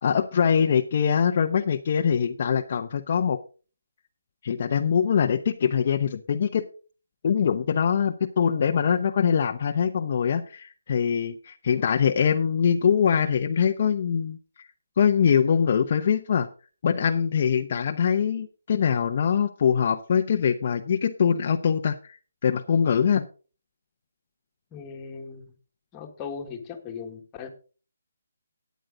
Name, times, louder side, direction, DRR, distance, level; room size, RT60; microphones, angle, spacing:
voice 1, 0.0-3.4 4.4-6.6 7.2-14.7 15.0-16.5 16.8-23.3, left 7 dB, 40° left, 6 dB, 0.7 m, -23 dB
voice 2, 24.7-25.5 25.9-27.5, left 6 dB, 15° left, 3 dB, 1.6 m, -38 dB
13.5 x 9.3 x 3.8 m, 0.36 s
hypercardioid pair, 165°, 0 cm